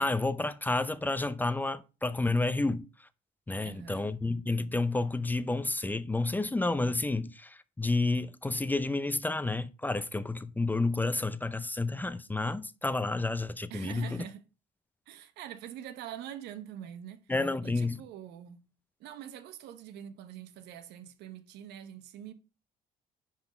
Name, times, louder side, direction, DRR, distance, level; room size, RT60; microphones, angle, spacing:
voice 1, 0.0-2.8 3.5-14.2 17.3-18.0, left 2 dB, 10° left, 0.5 m, -30 dB
voice 2, 3.6-4.1 13.7-14.4 15.1-17.3 17.6-18.7 19.0-22.3, right 10 dB, 85° right, 1.0 m, -44 dB
10.5 x 4.0 x 5.2 m
cardioid pair, 110°, 17 cm